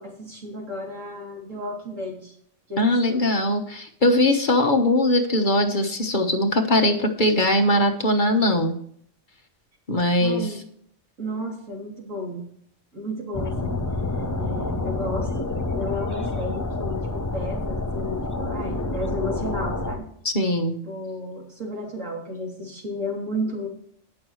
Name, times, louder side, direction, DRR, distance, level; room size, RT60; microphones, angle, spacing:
voice 1, 0.0-2.3 2.7-3.2 10.2-10.6 11.2-12.4 12.9-13.8 14.4-20.1 20.8-23.7, equal, 85° right, -1 dB, 3.4 m, -33 dB
voice 2, 2.8-8.7 9.9-10.5 20.2-20.8, left 1 dB, 40° left, 5 dB, 1.3 m, -21 dB
sound 1, 13.3-20.0, left 2 dB, 20° left, 0.6 m, -28 dB
18.5 x 6.3 x 3.1 m, 0.65 s
omnidirectional pair, 1.3 m